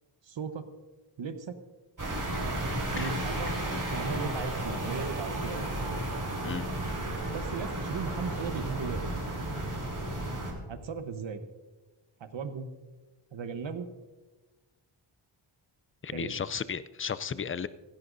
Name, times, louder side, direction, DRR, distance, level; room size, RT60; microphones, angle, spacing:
voice 1, 0.2-0.7 1.2-1.5 2.9-3.5 3.9-5.7 7.3-9.0 10.7-11.4 12.2-12.7 13.3-13.9 16.1-16.4, right 5 dB, 60° right, 9 dB, 1.0 m, -37 dB
sound 1, 2.0-10.5, right 1 dB, 40° right, 3.7 m, -33 dB
voice 2, 16.0-17.7, left 7 dB, 30° left, 15 dB, 0.4 m, -34 dB
16.5 x 16.0 x 2.6 m, 1.2 s
wide cardioid pair, 130°, 50 cm